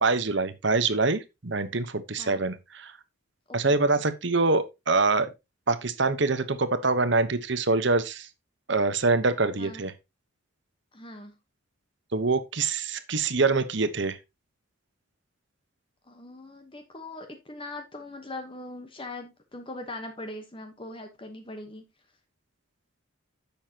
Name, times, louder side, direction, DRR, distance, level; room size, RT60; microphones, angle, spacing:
voice 1, 0.0-2.9 3.5-5.3 5.7-8.3 8.7-9.9 12.1-14.2, right 3 dB, 55° right, 1.0 m, -25 dB
voice 2, 10.9-11.4 16.1-21.8, left 2 dB, 25° left, 1.1 m, -41 dB
10.5 x 7.2 x 2.9 m
head